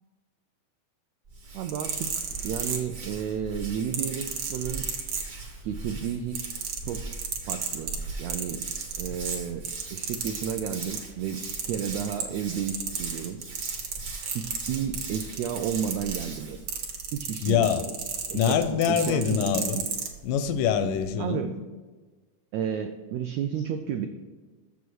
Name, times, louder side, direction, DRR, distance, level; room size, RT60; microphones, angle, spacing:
Hands, 1.3-16.7, right 3 dB, 45° right, 1.0 m, -41 dB
sound 1, 1.5-3.2 3.9-5.7 6.0-11.1 11.4-12.4 12.7-20.1 20.9-21.0, right 6 dB, 70° right, 1.1 m, -33 dB
voice 1, 1.5-2.1 2.4-4.9 5.6-7.0 7.5-7.9 8.2-8.6 9.0-9.6 9.9-11.4 11.7-13.4 14.3-16.6 17.1-17.7 18.3-19.4 19.7-19.8 21.2-21.5 22.5-24.1, right 8 dB, 85° right, 7 dB, 1.5 m, -32 dB
voice 2, 17.4-17.9 18.3-19.8 20.2-21.6, left 8 dB, 90° left, 10 dB, 2.3 m, -25 dB
6.9 x 6.2 x 6.2 m, 1.3 s
omnidirectional pair, 3.6 m